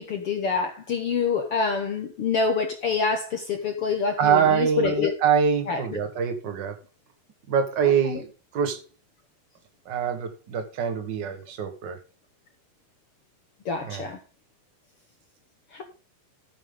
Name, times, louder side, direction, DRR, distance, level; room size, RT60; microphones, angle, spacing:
voice 1, 0.0-5.1 5.7-6.0 8.1-8.2 13.6-14.2 15.7-15.8, left 5 dB, 65° left, 1.5 m, -26 dB
voice 2, 4.2-6.8 7.5-8.8 9.8-12.0 13.8-14.0, right 7 dB, 65° right, 1.0 m, -24 dB
13.5 x 8.9 x 3.8 m
omnidirectional pair, 4.3 m